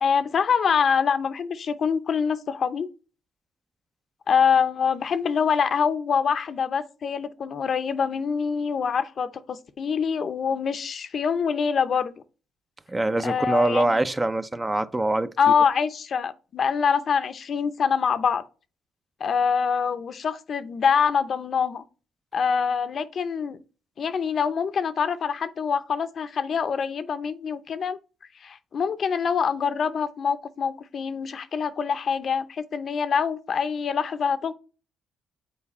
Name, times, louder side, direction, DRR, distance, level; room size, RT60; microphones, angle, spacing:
voice 1, 0.0-2.9 4.3-12.2 13.2-14.0 15.4-18.4 19.2-21.8 22.3-23.6 24.0-28.0 28.4-34.5, left 6 dB, 55° left, 0.6 m, -25 dB
voice 2, 12.9-15.3, right 2 dB, 15° right, 0.5 m, -23 dB
7.3 x 4.3 x 4.2 m
cardioid pair, 90°, 0 cm